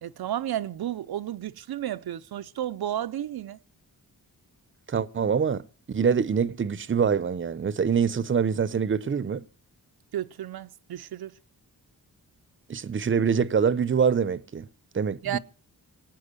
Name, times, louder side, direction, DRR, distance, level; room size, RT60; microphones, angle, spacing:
voice 1, 0.0-3.6 10.1-11.3 15.2-15.4, right 11 dB, 85° right, 0.6 m, -32 dB
voice 2, 4.9-5.6 5.9-9.4 12.7-14.6 14.9-15.4, right 6 dB, 35° right, 0.7 m, -25 dB
19.0 x 9.0 x 6.7 m
wide cardioid pair, 95°, 36 cm